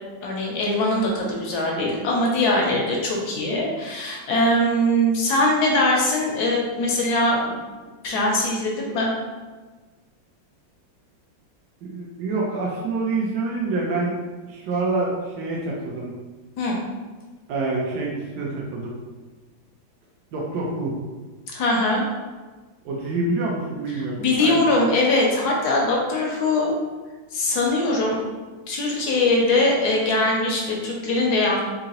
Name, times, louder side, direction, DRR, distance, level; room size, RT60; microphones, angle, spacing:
voice 1, 0.2-7.6 8.0-9.1 16.6-16.8 21.5-22.0 24.2-26.7 27.3-28.2 28.7-31.6, left 1 dB, 70° left, -1 dB, 1.0 m, -21 dB
voice 2, 11.8-14.2 14.5-16.1 17.5-19.0 20.3-21.0 22.8-24.6, right 3 dB, 70° right, -3 dB, 1.0 m, -26 dB
3.8 x 2.8 x 2.8 m, 1.3 s
omnidirectional pair, 2.1 m